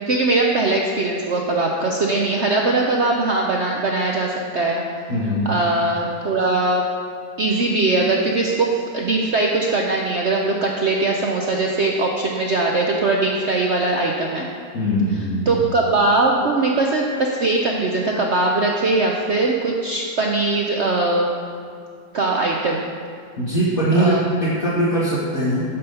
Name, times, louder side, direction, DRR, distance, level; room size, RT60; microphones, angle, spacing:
voice 1, 0.1-4.8 5.4-6.9 7.4-14.5 15.5-21.4 22.1-22.9 23.9-24.2, right 2 dB, 60° right, -1 dB, 0.7 m, -20 dB
voice 2, 5.1-5.5 14.7-15.6 23.4-25.7, equal, 50° left, -10 dB, 2.2 m, -21 dB
9.8 x 5.5 x 6.8 m, 2.1 s
omnidirectional pair, 2.0 m